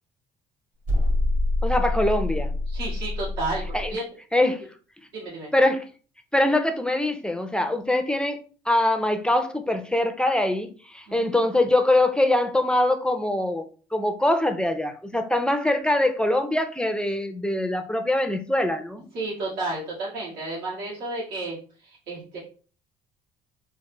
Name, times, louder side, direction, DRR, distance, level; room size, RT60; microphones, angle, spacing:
sound 1, 0.8-3.9, left 2 dB, 55° right, 1.9 m, -25 dB
voice 1, 1.6-2.5 3.7-3.9 4.3-4.7 5.5-5.8 6.3-13.6 13.9-19.0, left 1 dB, 5° left, 0.4 m, -23 dB
voice 2, 2.7-4.0 5.1-5.5 11.1-11.4 19.1-22.4, right 2 dB, 85° right, 1.7 m, -32 dB
4.5 x 2.3 x 2.9 m
cardioid pair, 110°, 17 cm